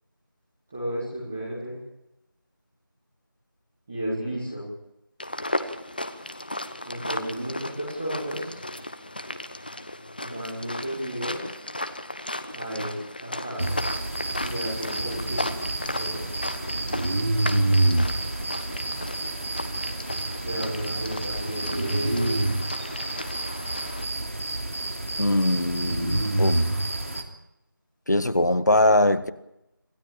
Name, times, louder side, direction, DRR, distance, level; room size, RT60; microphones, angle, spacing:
voice 1, 0.7-1.8 3.9-4.6 6.8-8.6 10.2-11.4 12.5-13.7 14.4-15.6 15.9-16.2 20.4-22.3, equal, ahead, -10 dB, 0.9 m, -33 dB
sound 1, 5.2-24.0, left 1 dB, 25° left, 1.1 m, -35 dB
sound 2, 13.6-27.2, right 2 dB, 40° right, 3.0 m, -28 dB
voice 2, 25.2-26.6 28.1-29.3, left 1 dB, 55° left, 12 dB, 1.6 m, -22 dB
26.5 x 16.5 x 8.8 m, 0.87 s
figure-of-eight pair, 175°, 11 cm